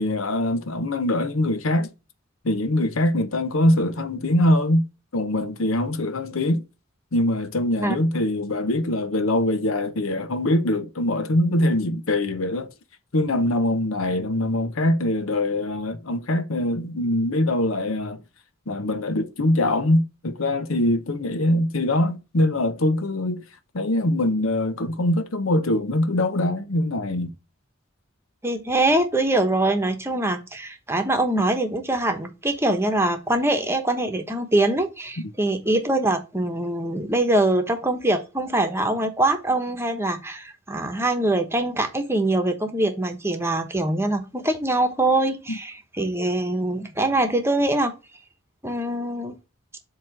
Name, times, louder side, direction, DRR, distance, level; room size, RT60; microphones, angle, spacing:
voice 1, 0.0-1.9 2.4-4.8 5.1-6.6 7.1-12.7 13.1-18.2 18.7-23.4 23.7-27.3 45.5-45.6, left 1 dB, 85° left, 0.9 m, -23 dB
voice 2, 28.4-47.9 48.6-49.4, right 1 dB, 10° right, 1.1 m, -23 dB
7.6 x 3.0 x 6.1 m
head